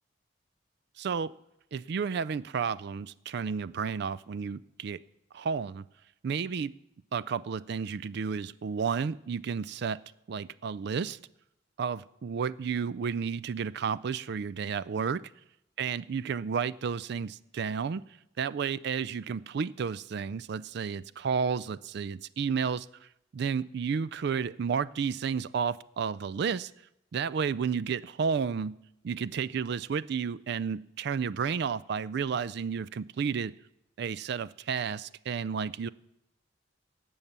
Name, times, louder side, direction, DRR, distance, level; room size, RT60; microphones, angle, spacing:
voice 1, 1.0-1.3 1.7-5.0 5.3-5.9 6.2-6.7 7.1-10.0 10.3-11.2 11.8-15.2 15.8-18.0 18.4-23.1 23.3-26.7 27.1-28.7 29.0-33.5 34.0-35.9, right 6 dB, 65° right, 18 dB, 0.4 m, -32 dB
18.0 x 7.2 x 6.8 m, 0.84 s
head